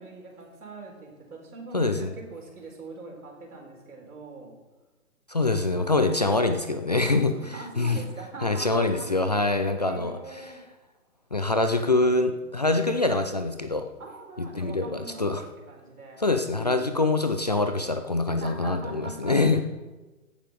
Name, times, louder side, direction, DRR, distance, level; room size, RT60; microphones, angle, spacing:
voice 1, 0.0-4.5 7.1-9.1 9.4-10.6 14.0-17.0 18.3-19.6, right 3 dB, 80° right, 0 dB, 4.7 m, -42 dB
voice 2, 1.7-2.1 5.3-7.3 7.8-8.0 8.4-10.5 11.3-13.9 14.4-15.4 16.2-19.6, left 2 dB, 30° left, 7 dB, 0.4 m, -24 dB
16.0 x 6.9 x 5.2 m, 1.2 s
hypercardioid pair, 155°, 44 cm